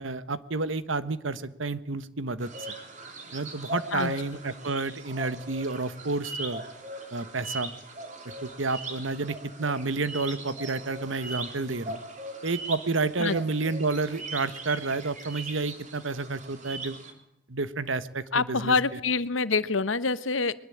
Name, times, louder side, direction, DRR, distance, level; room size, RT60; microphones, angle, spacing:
voice 1, 0.0-2.5 3.3-6.6 7.1-7.7 8.4-12.0 12.4-17.0 17.5-19.0, right 3 dB, 75° right, 14 dB, 1.3 m, -30 dB
sound 1, 2.4-17.1, right 2 dB, 40° right, 3.7 m, -40 dB
voice 2, 18.3-20.5, left 4 dB, 80° left, 15 dB, 1.1 m, -26 dB
22.0 x 21.0 x 8.6 m, 0.77 s
head